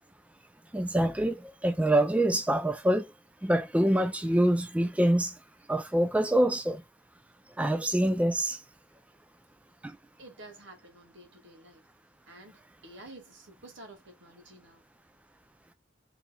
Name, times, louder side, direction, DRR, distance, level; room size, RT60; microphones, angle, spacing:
voice 1, 0.7-3.1 3.4-5.3 5.7-6.8 7.6-8.6 9.8-9.9, right 1 dB, 5° right, 0.3 m, -25 dB
voice 2, 10.2-11.9 12.3-14.8, right 2 dB, 70° right, 1.9 m, -50 dB
4.6 x 3.4 x 2.2 m
head